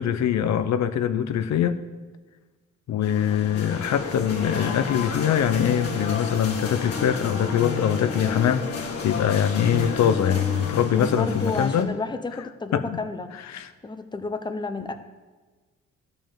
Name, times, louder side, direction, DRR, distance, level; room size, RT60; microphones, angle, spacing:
voice 1, 0.0-1.8 2.9-11.9 12.7-13.0 13.4-13.7, left 9 dB, 65° left, 10 dB, 0.8 m, -23 dB
sound 1, 3.0-11.8, left 4 dB, 50° left, 2.1 m, -31 dB
voice 2, 11.0-13.3 13.8-15.0, left 3 dB, 15° left, 9 dB, 0.9 m, -31 dB
13.0 x 5.5 x 7.4 m, 1.3 s
cardioid pair, 90°, 30 cm